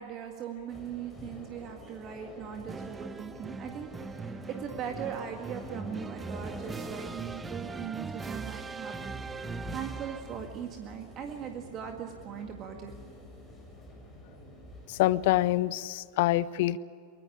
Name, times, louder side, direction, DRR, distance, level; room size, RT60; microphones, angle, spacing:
voice 1, 0.0-8.9 9.7-12.9, right 8 dB, 30° right, 4 dB, 1.9 m, -40 dB
sound 1, 0.7-15.6, left 1 dB, 5° left, 6.8 m, -48 dB
sound 2, 2.7-10.5, right 4 dB, 15° right, 0.9 m, -40 dB
voice 2, 14.9-16.8, left 16 dB, 50° left, 19 dB, 0.6 m, -26 dB
23.5 x 20.5 x 8.7 m, 2.3 s
figure-of-eight pair, 90°, 0 cm